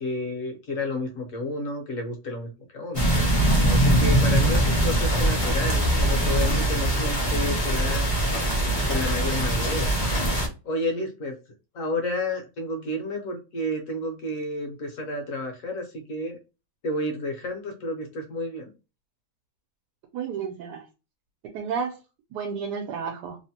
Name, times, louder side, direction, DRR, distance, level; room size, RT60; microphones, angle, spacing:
voice 1, 0.0-3.1 3.7-8.1 8.9-9.9 10.6-11.4 11.7-16.4 16.8-18.7, left 1 dB, 60° left, 3 dB, 1.1 m, -31 dB
sound 1, 2.9-10.5, right 1 dB, 30° left, 0.6 m, -22 dB
voice 2, 20.1-20.8 21.4-22.0 22.3-23.4, right 6 dB, 80° right, 3 dB, 1.1 m, -31 dB
3.0 x 2.0 x 2.8 m, 0.30 s
omnidirectional pair, 1.7 m